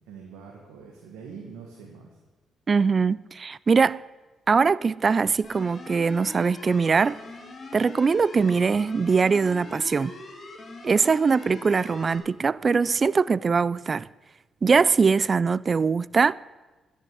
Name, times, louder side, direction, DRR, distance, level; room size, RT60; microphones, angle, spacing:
voice 1, 0.1-2.2, right 6 dB, 85° right, 1.6 m, -44 dB
voice 2, 2.7-4.0 4.5-7.2 7.7-10.1 10.8-14.1 14.6-16.3, right 5 dB, 45° right, 0.3 m, -22 dB
sound 1, 5.4-12.2, left 3 dB, 45° left, 2.6 m, -42 dB
10.5 x 6.5 x 8.3 m
supercardioid pair, 50°, 0 cm